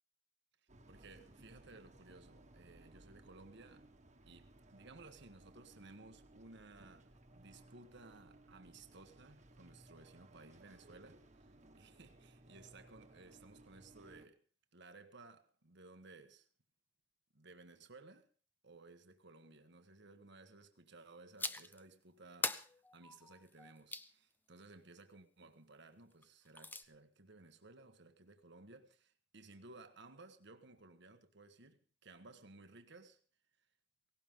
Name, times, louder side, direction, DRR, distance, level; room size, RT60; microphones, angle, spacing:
sound 1, 0.7-14.3, right 1 dB, 40° right, 1.7 m, -62 dB
voice 1, 0.9-3.9 4.3-14.4 14.7-16.5 17.3-18.3 18.6-33.2, right 3 dB, 65° right, 1.5 m, -58 dB
sound 2, 21.4-21.8 22.4-24.1 26.2-26.8, left 3 dB, 10° left, 0.7 m, -41 dB
17.5 x 17.5 x 3.8 m
head